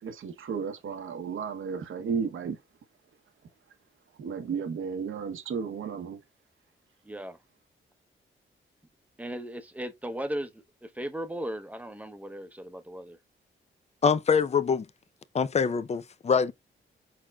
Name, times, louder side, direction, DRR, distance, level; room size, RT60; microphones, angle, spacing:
voice 1, 0.0-2.6 4.2-6.2, right 6 dB, 70° right, 0.9 m, -33 dB
voice 2, 7.0-7.4 9.2-13.2, right 1 dB, 5° right, 0.7 m, -37 dB
voice 3, 14.0-14.9 15.3-16.5, left 6 dB, 30° left, 0.4 m, -24 dB
4.4 x 4.3 x 2.2 m
cardioid pair, 60°, 21 cm